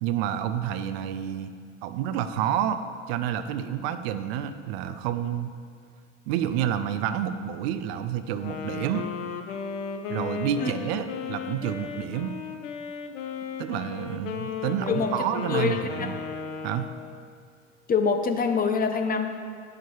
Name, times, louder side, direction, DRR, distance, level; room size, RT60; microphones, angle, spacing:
voice 1, 0.0-1.5 1.8-2.8 3.1-5.5 6.3-9.1 10.1-12.3 13.6-16.1 16.6-16.9, right 10 dB, 55° right, 11 dB, 0.5 m, -29 dB
Wind instrument woodwind instrument, 8.3-17.3, left 6 dB, 75° left, 0.6 m, -35 dB
voice 2, 15.5-16.1 17.9-19.4, left 5 dB, 25° left, 6 dB, 0.6 m, -25 dB
8.9 x 6.5 x 3.1 m, 2.2 s
figure-of-eight pair, 70°, 37 cm